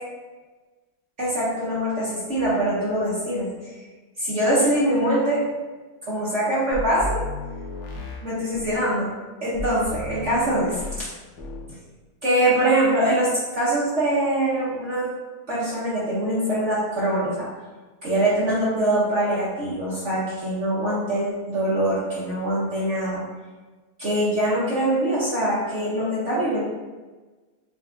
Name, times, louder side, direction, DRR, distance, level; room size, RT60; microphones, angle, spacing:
voice 1, 1.2-3.7 4.2-5.4 6.0-7.2 8.2-9.1 9.4-10.8 12.2-15.1 15.5-17.5 18.0-23.2 24.0-26.6, right 1 dB, 50° right, -8 dB, 0.9 m, -23 dB
sound 1, 6.7-8.9 9.5-11.1 11.4-11.7, left 2 dB, 70° left, 1.6 m, -34 dB
7.9 x 2.7 x 2.4 m, 1.3 s
omnidirectional pair, 2.4 m